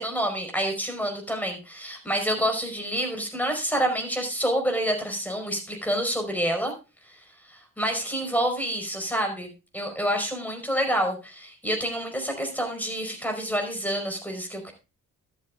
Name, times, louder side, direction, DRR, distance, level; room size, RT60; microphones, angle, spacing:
voice 1, 0.0-6.7 7.5-14.7, equal, 5° left, 3 dB, 4.8 m, -28 dB
13.0 x 9.9 x 2.4 m, 0.28 s
hypercardioid pair, 45°, 39 cm